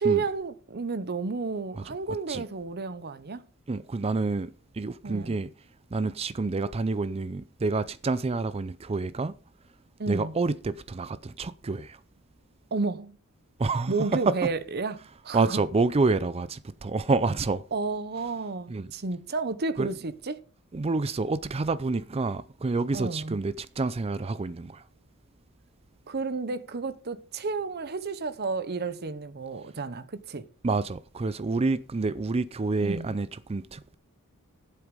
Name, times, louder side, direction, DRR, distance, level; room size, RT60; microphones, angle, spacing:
voice 1, 0.0-3.4 5.0-5.3 10.0-10.3 12.7-13.2 13.9-15.6 17.7-20.4 22.9-23.4 26.1-30.4 32.8-33.1, right 4 dB, 45° right, 0.8 m, -31 dB
voice 2, 2.1-2.4 3.7-5.5 5.9-9.3 10.1-12.0 13.6-14.5 15.3-17.6 18.7-18.9 19.8-19.9 20.7-24.8 30.6-33.9, right 3 dB, 25° right, 0.4 m, -28 dB
13.0 x 8.0 x 5.3 m
head